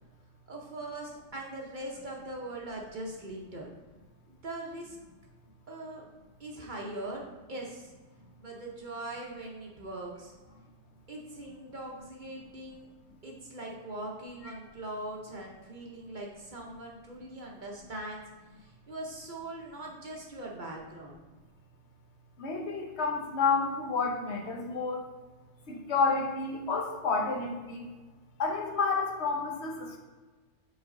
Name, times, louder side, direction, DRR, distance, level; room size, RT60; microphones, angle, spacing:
voice 1, 0.5-3.7 4.3-5.0 5.7-6.0 6.4-7.9 8.4-10.3 11.1-12.9 13.2-18.2 18.6-21.2, right 1 dB, 45° right, -1 dB, 0.9 m, -41 dB
voice 2, 22.4-25.0 25.7-27.9 28.4-30.0, left 4 dB, 65° left, 1 dB, 1.1 m, -30 dB
6.4 x 4.3 x 3.7 m, 1.2 s
omnidirectional pair, 1.3 m